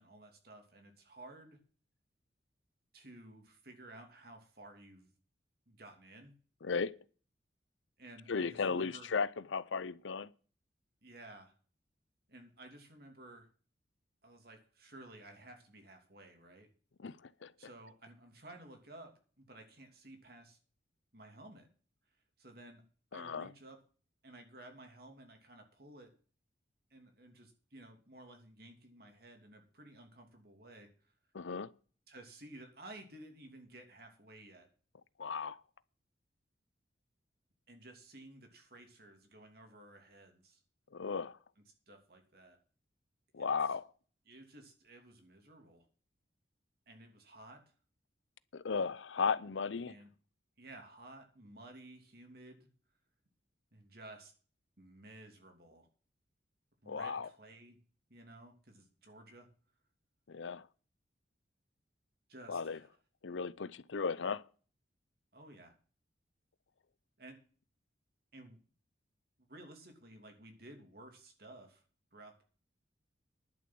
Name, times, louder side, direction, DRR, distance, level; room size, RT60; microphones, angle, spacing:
voice 1, 0.0-1.6 2.9-5.1 5.7-6.3 8.0-9.1 11.0-11.5 12.3-13.5 14.2-16.7 17.6-20.6 21.1-21.7 22.4-22.8 23.1-23.8 24.2-26.1 26.9-31.1 32.1-34.7 37.7-40.6 41.9-42.6 43.4-43.8 44.2-45.9 46.9-47.6 49.9-50.1 50.6-52.7 53.7-54.3 54.8-55.9 56.8-57.8 58.1-59.5 62.3-62.9 65.3-65.7 67.2-67.4 68.3-68.6 69.5-71.8 72.1-72.4, right 1 dB, 55° right, 2.9 m, -54 dB
voice 2, 6.6-6.9 8.3-10.3 17.0-17.5 23.1-23.5 31.3-31.7 35.2-35.6 40.9-41.4 43.3-43.9 48.5-49.9 56.9-57.3 60.3-60.7 62.5-62.8 63.2-64.4, left 5 dB, 80° left, 0.6 m, -35 dB
11.0 x 7.0 x 7.6 m
head